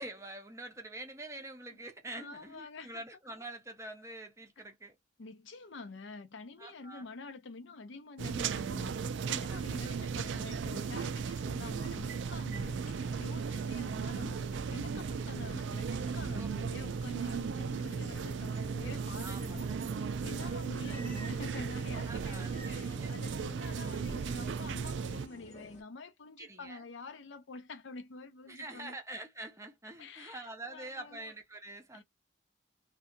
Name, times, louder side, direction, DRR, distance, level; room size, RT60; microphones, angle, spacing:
voice 1, 0.0-5.0 6.6-7.1 9.5-10.1 16.4-16.7 19.2-19.7 22.1-23.2 26.4-26.8 28.5-32.0, right 2 dB, 15° right, 0.6 m, -46 dB
voice 2, 2.2-3.0 4.6-4.7 5.2-19.7 19.9-29.0 30.0-31.3 31.9-32.0, left 3 dB, 70° left, 0.6 m, -48 dB
sound 1, 8.2-25.3, right 5 dB, 65° right, 0.3 m, -36 dB
sound 2, 12.7-25.8, left 1 dB, 35° left, 0.9 m, -53 dB
Livestock farm animals working animals, 20.5-21.6 21.9-22.9 23.2-24.5 25.0-25.4, right 2 dB, 10° left, 0.9 m, -55 dB
2.7 x 2.4 x 2.4 m
head